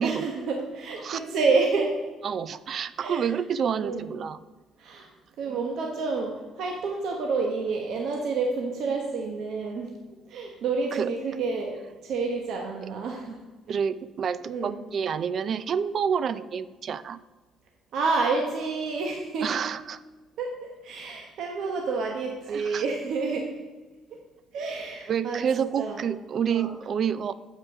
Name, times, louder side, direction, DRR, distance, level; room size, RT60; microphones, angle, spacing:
voice 1, 0.0-2.0 3.0-3.3 3.8-4.1 4.8-5.1 5.4-9.9 10.3-13.5 14.5-14.8 17.9-19.6 20.4-23.5 24.5-26.0 26.5-26.7, right 4 dB, 65° right, 1 dB, 1.0 m, -29 dB
voice 2, 2.2-4.4 5.5-5.6 10.9-11.1 13.7-17.2 19.4-20.0 22.5-22.8 25.1-27.3, right 7 dB, 45° right, 15 dB, 0.4 m, -28 dB
7.7 x 5.7 x 5.7 m, 1.2 s
cardioid pair, 145°, 0 cm